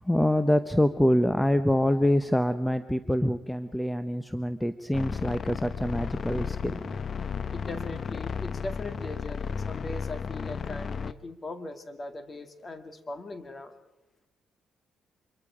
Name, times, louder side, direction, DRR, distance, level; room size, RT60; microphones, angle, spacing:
voice 1, 0.0-6.8, left 1 dB, 5° left, 11 dB, 0.8 m, -25 dB
sound 1, 4.9-11.1, left 6 dB, 45° left, 0.8 m, -34 dB
voice 2, 7.5-13.8, left 2 dB, 30° left, 8 dB, 2.2 m, -39 dB
25.5 x 23.0 x 5.1 m, 0.94 s
cardioid pair, 90°, 0 cm